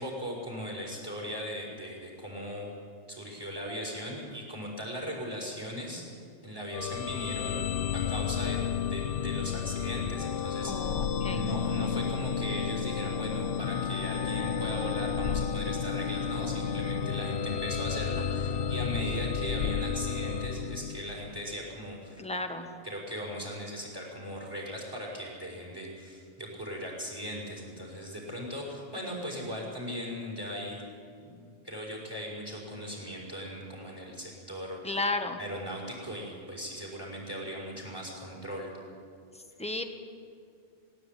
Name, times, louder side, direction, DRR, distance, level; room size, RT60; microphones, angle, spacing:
voice 1, 0.0-2.8 3.1-6.0 6.4-10.9 11.3-22.2 22.8-30.8 31.2-35.0 35.4-38.7, equal, 20° right, -2 dB, 6.0 m, -38 dB
sound 1, 6.7-21.5, left 7 dB, 60° left, 0.8 m, -32 dB
voice 2, 10.6-11.4 22.2-22.7 34.8-35.4 39.3-39.8, left 2 dB, 5° left, 5 dB, 1.4 m, -33 dB
19.5 x 17.0 x 9.2 m, 2.3 s
omnidirectional pair, 1.2 m